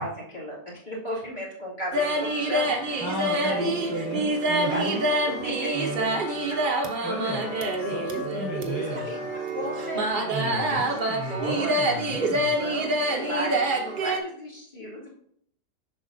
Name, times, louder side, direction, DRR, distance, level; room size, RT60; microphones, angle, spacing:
voice 1, 0.0-3.0 3.5-3.9 4.7-5.7 7.0-7.1 8.9-9.2 9.5-12.3 12.6-15.1, equal, 25° left, -6 dB, 2.5 m, -35 dB
sound 1, 1.9-14.2, right 1 dB, 45° right, 0.7 m, -27 dB
voice 2, 3.0-5.0 5.7-6.5 7.0-7.4 7.8-9.1 10.3-12.6, right 1 dB, 15° right, -2 dB, 1.0 m, -34 dB
Wind instrument woodwind instrument, 5.2-8.7 9.0-13.5, left 4 dB, 70° left, 1.1 m, -43 dB
7.2 x 6.1 x 2.7 m, 0.67 s
omnidirectional pair, 1.9 m